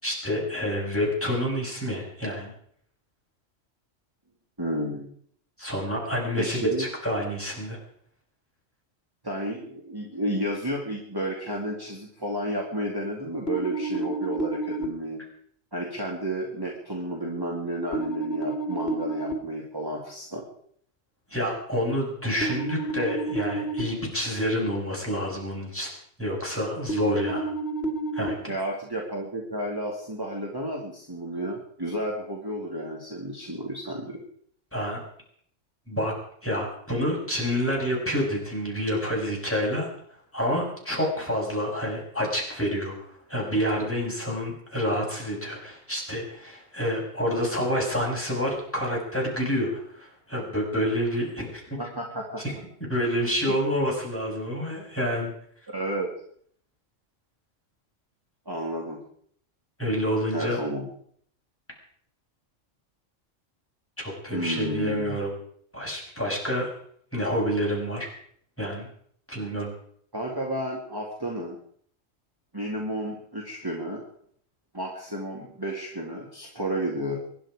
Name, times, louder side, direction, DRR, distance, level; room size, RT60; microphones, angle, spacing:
voice 1, 0.0-2.5 5.6-7.8 21.3-25.9 26.2-27.5 28.1-28.4 34.7-35.0 35.9-36.1 36.4-39.9 40.3-51.6 52.4-52.5 52.9-55.3 59.8-60.6 64.0-65.4 65.7-66.7 67.1-68.1 68.6-68.9 69.3-69.7, equal, 10° left, -2 dB, 6.0 m, -28 dB
voice 2, 4.6-5.1 6.3-6.9 9.2-15.2 15.7-20.4 28.5-34.2 51.8-52.4 53.5-53.6 55.7-56.1 58.5-59.0 60.3-60.9 64.3-65.2 70.1-71.6 72.5-74.0 74.7-77.2, right 1 dB, 15° right, -2 dB, 2.5 m, -31 dB
sound 1, 13.5-14.8 17.9-19.3 22.4-23.8 26.9-28.3, right 2 dB, 55° left, 2.3 m, -30 dB
24.0 x 11.0 x 5.0 m, 0.62 s
omnidirectional pair, 1.3 m